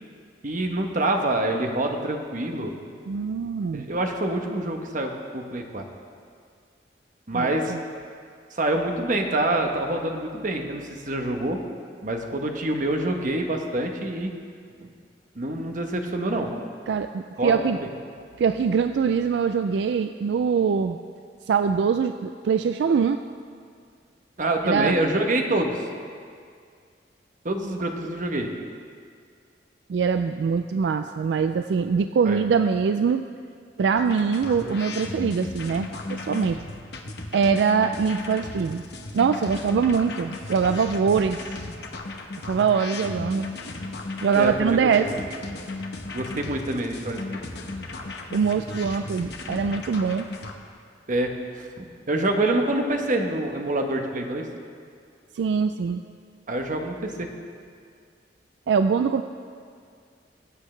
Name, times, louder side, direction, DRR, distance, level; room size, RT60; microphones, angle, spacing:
voice 1, 0.4-2.7 3.7-5.8 7.3-7.7 8.5-11.6 12.0-14.3 14.8-14.9 15.4-16.5 17.4-17.7 24.4-25.8 27.4-28.5 32.2-32.4 44.3-45.2 46.1-47.4 51.1-51.3 51.6-54.5 56.5-57.3, right 1 dB, 45° right, 3 dB, 1.0 m, -26 dB
voice 2, 3.1-3.9 7.3-7.8 16.9-17.8 18.4-21.0 21.5-23.2 24.6-24.9 29.9-33.2 33.8-36.6 37.3-38.8 39.1-41.6 42.5-43.5 44.2-45.1 48.3-50.3 55.3-56.0 58.7-59.2, right 6 dB, 75° right, 9 dB, 0.3 m, -23 dB
sound 1, 34.0-50.5, left 2 dB, 65° left, 1.0 m, -36 dB
19.5 x 8.4 x 3.3 m, 2.2 s
head